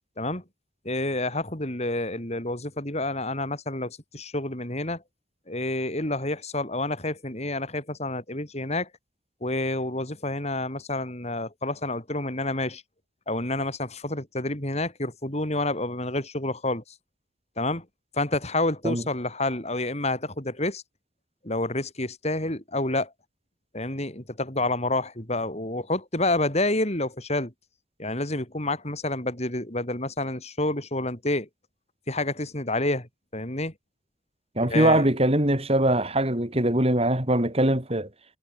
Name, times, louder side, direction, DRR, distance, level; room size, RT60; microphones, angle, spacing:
voice 1, 0.9-5.0 5.5-8.9 9.4-12.8 13.3-16.8 17.6-17.9 18.1-20.8 21.4-23.1 23.7-27.5 28.0-31.5 32.1-33.7 34.6-35.1, left 2 dB, 35° left, 5.2 m, -29 dB
voice 2, 34.6-38.1, right 1 dB, 30° right, 3.8 m, -22 dB
head